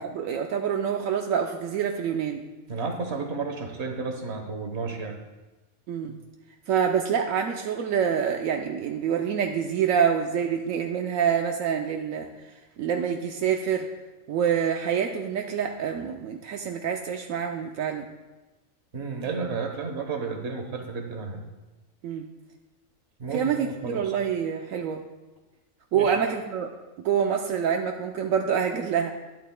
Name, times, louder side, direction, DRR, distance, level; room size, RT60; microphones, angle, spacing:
voice 1, 0.0-2.4 5.9-6.2 6.7-12.3 12.8-13.9 14.3-18.0 22.0-22.3 23.3-25.0 25.9-26.7 27.0-29.1, right 7 dB, 80° right, 3 dB, 1.0 m, -26 dB
voice 2, 2.7-5.2 18.9-21.4 23.2-24.1 25.9-26.2, right 4 dB, 55° right, 4 dB, 1.4 m, -32 dB
12.0 x 11.0 x 2.2 m, 1.1 s
omnidirectional pair, 1.4 m